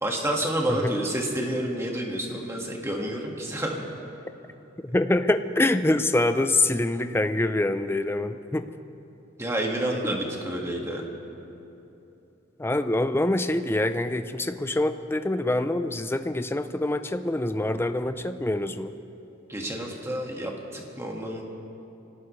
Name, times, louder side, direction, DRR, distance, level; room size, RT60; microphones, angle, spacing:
voice 1, 0.0-3.8 9.4-11.0 19.5-21.4, right 1 dB, 15° right, 0 dB, 1.7 m, -29 dB
voice 2, 4.8-8.7 10.1-10.2 12.6-18.9, left 2 dB, 10° left, 10 dB, 0.5 m, -25 dB
24.5 x 18.0 x 3.2 m, 2.9 s
head